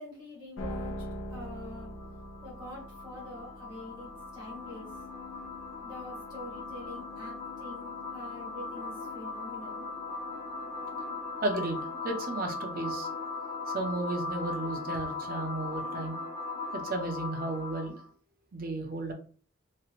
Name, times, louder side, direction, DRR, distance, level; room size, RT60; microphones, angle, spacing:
voice 1, 0.0-1.9 2.4-5.0 5.8-9.8, left 2 dB, 25° right, -5 dB, 1.4 m, -46 dB
sound 1, 0.6-12.9, left 1 dB, 85° left, 0.5 m, -46 dB
sound 2, 1.4-18.1, left 3 dB, 15° left, 0.7 m, -39 dB
voice 2, 11.4-13.1 13.7-16.2 16.7-18.0 18.5-19.1, right 2 dB, 45° right, 4 dB, 0.6 m, -34 dB
3.2 x 2.9 x 2.4 m, 0.41 s
head